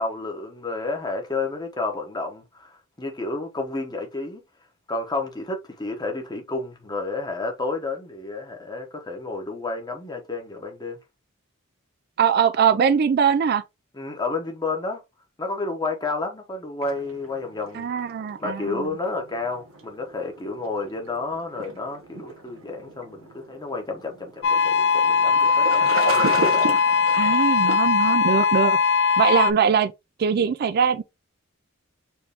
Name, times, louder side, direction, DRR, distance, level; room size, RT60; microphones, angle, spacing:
voice 1, 0.0-4.4 4.9-11.0 13.9-15.0 15.4-18.1 18.4-26.7, left 3 dB, 20° left, 0.9 m, -31 dB
voice 2, 12.2-13.6 17.7-18.9 27.1-28.8 29.2-29.9 30.2-31.0, right 7 dB, 50° right, 0.3 m, -21 dB
sound 1, 16.8-27.8, right 3 dB, 85° right, 1.1 m, -34 dB
sound 2, 24.4-29.5, left 5 dB, 55° left, 0.4 m, -20 dB
4.5 x 2.6 x 3.4 m
head